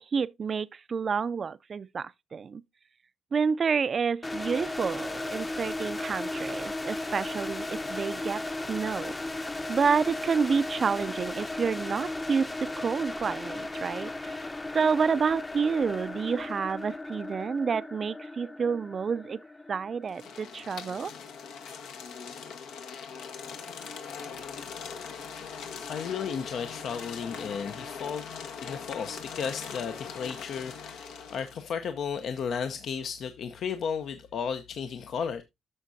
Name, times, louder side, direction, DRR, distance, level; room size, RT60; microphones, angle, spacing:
voice 1, 0.0-2.6 3.3-8.4 8.7-9.1 9.7-14.4 14.7-19.4 19.7-21.1, right 5 dB, 45° right, 0.4 m, -29 dB
sound 1, 4.2-21.1, left 2 dB, 20° left, 0.7 m, -36 dB
sound 2, 20.1-31.7, left 6 dB, 85° left, 1.3 m, -41 dB
voice 2, 25.9-28.3 28.6-35.4, left 6 dB, 65° left, 0.7 m, -34 dB
11.0 x 6.4 x 2.7 m
cardioid pair, 90°, 0 cm